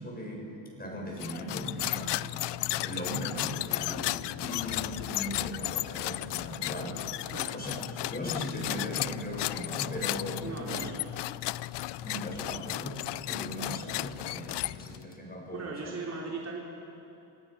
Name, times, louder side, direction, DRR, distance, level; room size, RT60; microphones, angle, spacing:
voice 1, 0.0-2.4 2.7-4.1 4.4-7.2 7.5-7.7 8.1-10.9 12.0-15.9, equal, 20° left, 0 dB, 6.3 m, -38 dB
sound 1, 1.2-15.1, left 17 dB, 65° left, 0.5 m, -34 dB
voice 2, 7.3-7.6 10.4-11.0 15.5-16.6, right 4 dB, 35° right, -3 dB, 3.2 m, -38 dB
27.0 x 18.0 x 5.9 m, 2.9 s
cardioid pair, 85°, 47 cm